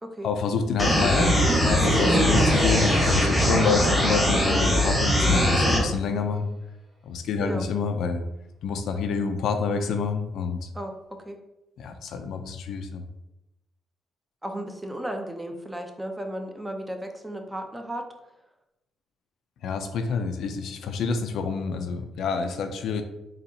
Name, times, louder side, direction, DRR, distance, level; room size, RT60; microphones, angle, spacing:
voice 1, 0.2-6.5 7.0-8.2 8.6-10.7 11.8-13.0 19.6-23.0, left 5 dB, 75° left, 7 dB, 0.4 m, -27 dB
sound 1, 0.8-5.8, left 1 dB, 10° left, 1.0 m, -21 dB
sound 2, 1.2-4.9, right 1 dB, 45° right, 1.3 m, -28 dB
voice 2, 10.7-11.4 14.4-18.1, right 1 dB, 10° right, 4 dB, 0.5 m, -34 dB
4.2 x 2.8 x 2.7 m, 0.91 s
cardioid pair, 90°, 0 cm